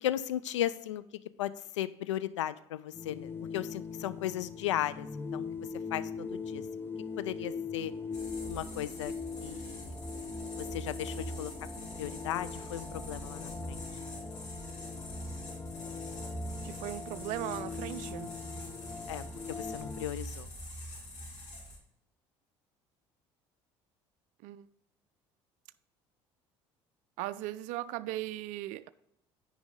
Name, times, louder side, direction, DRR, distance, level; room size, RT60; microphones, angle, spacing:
voice 1, 0.0-1.0 1.4-5.5 5.9-6.6 7.2-7.9 8.4-9.1 9.4-10.0 10.6-13.8 19.1-20.5, left 12 dB, 80° left, 0.4 m, -36 dB
sound 1, 2.9-20.1, left 5 dB, 15° left, 0.5 m, -41 dB
sound 2, 8.1-21.8, equal, 50° left, 2.9 m, -44 dB
voice 2, 16.6-18.4 24.4-24.7 27.2-28.9, right 15 dB, 60° right, 0.4 m, -38 dB
9.6 x 4.8 x 3.8 m
figure-of-eight pair, 60°, 15 cm